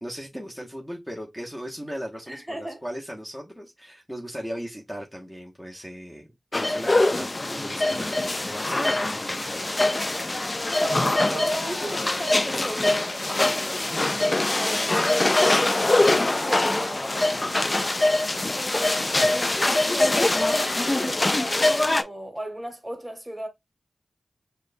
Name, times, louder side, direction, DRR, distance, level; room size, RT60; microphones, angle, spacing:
voice 1, 0.0-6.3 6.5-9.7, equal, 5° left, 1.0 m, -37 dB
voice 2, 2.3-2.8 10.8-17.0 18.5-23.5, right 1 dB, 20° right, 1.3 m, -36 dB
sound 1, 6.5-22.0, left 2 dB, 35° left, 0.4 m, -23 dB
6.1 x 2.3 x 2.5 m
cardioid pair, 45°, 0 cm